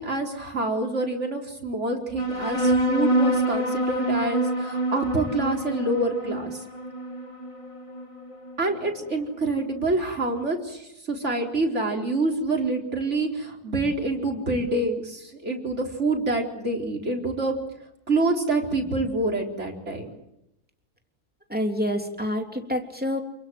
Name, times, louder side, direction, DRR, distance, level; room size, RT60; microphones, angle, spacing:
voice 1, 0.0-6.6 8.6-17.5 18.1-20.0, right 2 dB, 45° right, 1 dB, 4.6 m, -26 dB
sound 1, 2.2-9.1, right 1 dB, 20° left, 1.6 m, -26 dB
voice 2, 21.5-23.2, equal, 5° right, 3 dB, 3.1 m, -27 dB
29.5 x 22.0 x 7.8 m, 0.86 s
omnidirectional pair, 1.6 m